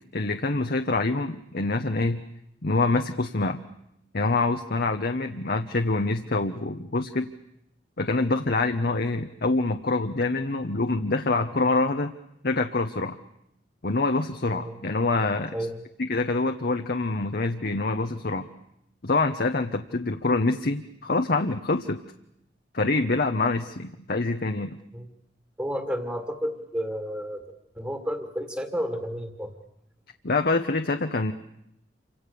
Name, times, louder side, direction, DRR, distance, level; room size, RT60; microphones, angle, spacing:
voice 1, 0.0-2.2 2.6-3.6 4.1-7.3 8.0-12.1 12.4-13.2 13.8-15.5 16.0-18.5 19.0-22.0 22.7-24.8 30.2-31.3, left 3 dB, 60° left, 5 dB, 1.1 m, -25 dB
voice 2, 15.5-15.8 24.9-25.1 25.6-27.4 27.7-29.5, equal, 15° right, 5 dB, 2.2 m, -31 dB
28.5 x 25.5 x 7.0 m, 0.79 s
head